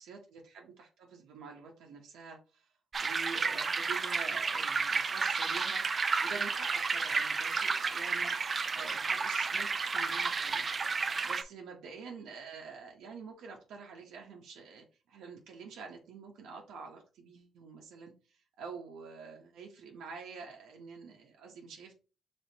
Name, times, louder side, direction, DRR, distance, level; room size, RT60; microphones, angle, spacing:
voice 1, 0.0-2.7 3.0-10.7 11.2-21.9, right 5 dB, 80° right, 1 dB, 0.9 m, -47 dB
sound 1, 2.9-11.4, right 4 dB, 35° right, 0.4 m, -31 dB
5.3 x 3.5 x 2.8 m, 0.34 s
cardioid pair, 90°, 0 cm